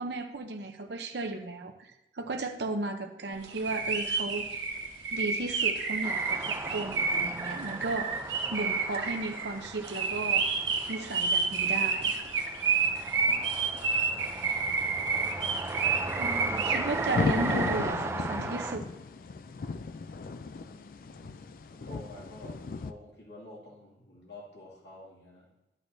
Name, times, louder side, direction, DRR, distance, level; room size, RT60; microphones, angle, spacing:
voice 1, 0.0-4.5 5.1-8.1 8.5-10.5 10.9-12.1 16.2-18.9, right 2 dB, 70° right, 5 dB, 0.7 m, -35 dB
sound 1, 3.5-17.8, right 5 dB, 85° right, 1.4 m, -30 dB
sound 2, 3.6-22.9, left 4 dB, 50° left, 0.3 m, -40 dB
sound 3, 6.0-18.8, right 2 dB, 15° right, 0.5 m, -37 dB
voice 2, 12.7-13.7 20.6-21.3 21.7-25.5, left 1 dB, 70° left, -5 dB, 2.3 m, -50 dB
11.5 x 8.4 x 2.7 m, 0.93 s
head